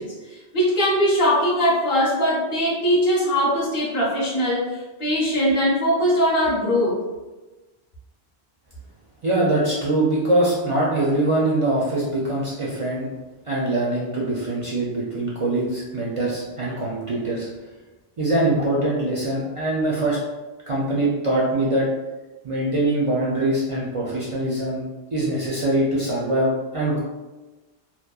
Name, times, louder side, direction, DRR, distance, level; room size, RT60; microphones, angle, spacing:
voice 1, 0.0-7.0, equal, 65° left, -8 dB, 0.9 m, -21 dB
voice 2, 9.2-13.1 13.5-17.5 18.2-20.2 20.7-21.8 22.4-24.8 25.1-27.0, right 1 dB, 55° right, -6 dB, 0.4 m, -23 dB
2.9 x 2.1 x 2.2 m, 1.2 s
omnidirectional pair, 1.1 m